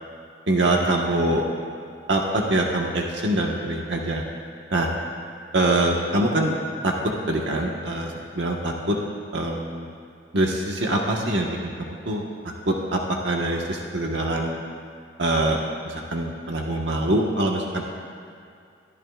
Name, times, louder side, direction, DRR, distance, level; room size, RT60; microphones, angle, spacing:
voice 1, 0.5-1.4 2.1-4.2 4.7-4.9 5.5-6.5 6.8-6.9 7.3-9.0 9.3-9.9 10.3-14.6 15.2-15.6 15.8-17.9, right 1 dB, 80° right, -1 dB, 1.4 m, -24 dB
25.0 x 15.0 x 2.5 m, 2.4 s
head